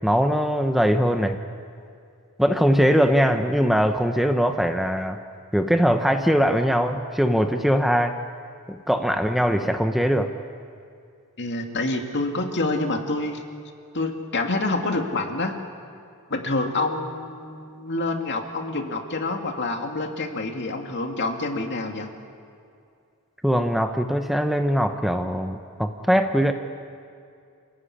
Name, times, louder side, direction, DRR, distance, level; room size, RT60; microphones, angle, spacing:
voice 1, 0.0-1.4 2.4-5.2 5.5-8.1 8.7-10.3 23.4-26.5, equal, ahead, 6 dB, 0.8 m, -21 dB
voice 2, 11.4-13.4 13.9-15.6 16.3-22.1, left 2 dB, 55° left, 4 dB, 2.3 m, -27 dB
28.0 x 16.0 x 10.0 m, 2.4 s
head